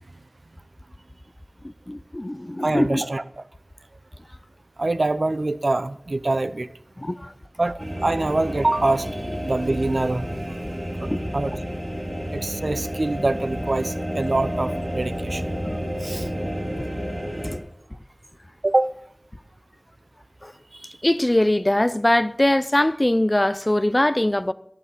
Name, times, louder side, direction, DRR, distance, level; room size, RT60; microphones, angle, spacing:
voice 1, 1.6-3.0 7.0-7.3 11.1-11.2 15.7-15.8 16.8-16.9 17.4-17.6 20.4-20.5 21.0-24.5, left 1 dB, 30° left, 0.5 m, -22 dB
voice 2, 2.6-3.4 4.8-6.7 7.6-10.3 11.0-11.6 12.3-15.4 16.0-16.3 18.6-18.9 20.7-21.0, right 2 dB, 70° right, 0.6 m, -25 dB
sound 1, 7.8-17.5, equal, 50° right, 5.9 m, -30 dB
19.5 x 13.0 x 4.1 m
wide cardioid pair, 45°, 0 cm